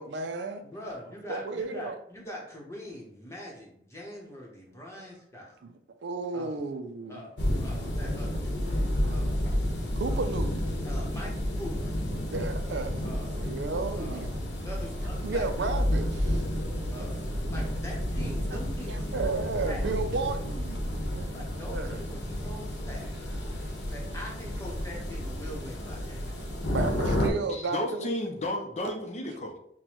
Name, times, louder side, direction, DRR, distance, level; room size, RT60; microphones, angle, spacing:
voice 1, 0.0-0.6 1.3-2.0 5.6-7.3 9.0-9.3 10.0-10.5 12.3-13.0 13.4-14.3 15.2-16.4 16.8-17.1 18.5-20.8 21.1-22.0 23.5-23.7 26.7-28.1 28.8-28.9, right 3 dB, 75° right, 0.4 m, -34 dB
voice 2, 0.6-5.6 6.3-6.6 7.1-9.5 10.8-12.0 13.0-13.5 14.0-15.8 16.9-19.3 19.7-19.9 21.3-23.1 23.9-26.5, equal, 15° left, 0.9 m, -43 dB
sound 1, 7.4-27.3, left 1 dB, 80° left, 1.0 m, -31 dB
voice 3, 27.5-29.6, left 1 dB, 40° left, 0.6 m, -33 dB
5.9 x 2.2 x 3.0 m
head